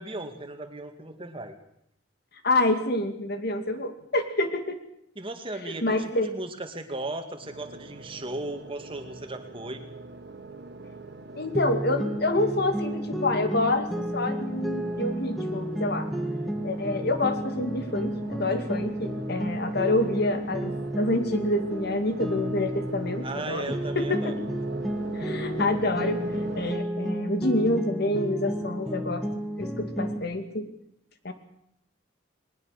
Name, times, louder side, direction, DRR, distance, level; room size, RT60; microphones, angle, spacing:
voice 1, 0.0-1.6 5.2-9.8 23.2-24.4, right 2 dB, 25° right, 6 dB, 2.2 m, -36 dB
voice 2, 2.4-4.8 5.8-6.3 11.3-16.1 16.6-23.7 24.0-24.3 25.1-26.2 26.6-29.2 29.6-30.7 31.2-31.3, left 2 dB, 55° left, 8 dB, 2.3 m, -27 dB
sound 1, 7.4-26.8, right 2 dB, 55° right, 1.7 m, -42 dB
sound 2, 11.5-23.4 23.7-30.2, equal, ahead, 1.5 m, -32 dB
20.5 x 19.0 x 6.6 m, 0.75 s
head